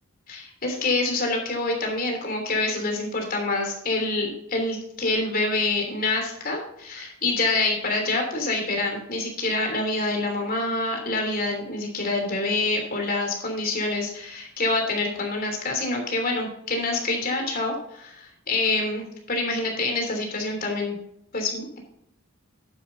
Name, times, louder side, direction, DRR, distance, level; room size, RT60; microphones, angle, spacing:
voice 1, 0.3-20.9 21.3-21.8, left 2 dB, 45° left, 2 dB, 3.1 m, -26 dB
11.0 x 9.8 x 2.7 m, 0.74 s
head